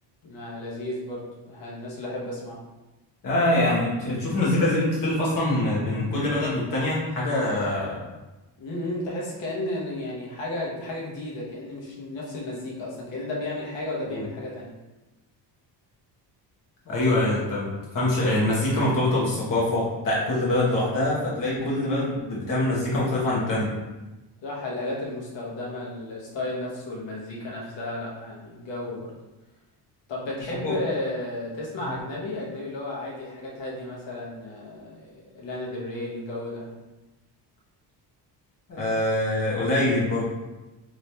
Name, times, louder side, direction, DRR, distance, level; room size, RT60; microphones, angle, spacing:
voice 1, 0.2-2.6 8.6-14.7 24.4-29.1 30.1-36.7, left 1 dB, 85° left, -4 dB, 1.1 m, -33 dB
voice 2, 3.2-8.0 14.1-14.2 16.9-23.7 30.6-30.7 38.7-40.3, left 1 dB, 50° left, -6 dB, 1.4 m, -24 dB
3.2 x 3.0 x 2.9 m, 1.1 s
cardioid pair, 155°, 43 cm